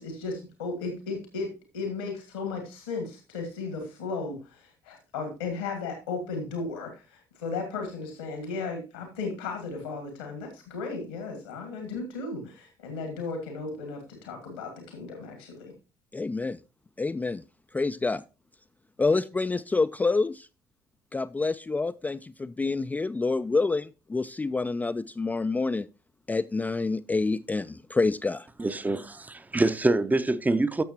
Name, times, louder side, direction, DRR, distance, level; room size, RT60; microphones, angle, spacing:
voice 1, 0.0-15.7, left 4 dB, 85° left, 1.7 m, -35 dB
voice 2, 16.1-16.6 17.0-17.4 17.7-18.2 19.0-20.5 21.1-25.9 26.3-28.5, left 3 dB, 15° left, 0.4 m, -27 dB
voice 3, 28.6-30.8, right 2 dB, 15° right, 0.7 m, -25 dB
13.5 x 6.4 x 2.9 m
figure-of-eight pair, 50°, 10 cm